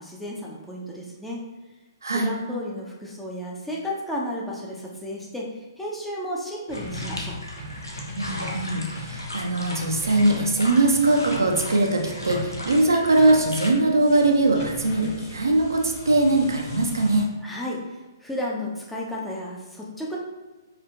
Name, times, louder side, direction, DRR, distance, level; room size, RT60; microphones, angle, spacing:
voice 1, 0.0-1.4 2.1-7.4 17.4-20.2, left 1 dB, 5° left, -4 dB, 0.5 m, -33 dB
voice 2, 2.0-2.3 8.2-17.3, right 2 dB, 70° right, 2 dB, 0.5 m, -21 dB
sound 1, 6.7-13.7, left 1 dB, 85° left, 0.7 m, -37 dB
sound 2, 6.7-17.2, left 1 dB, 60° left, 1.4 m, -38 dB
4.4 x 2.4 x 2.4 m, 1.2 s
figure-of-eight pair, 125°, 2 cm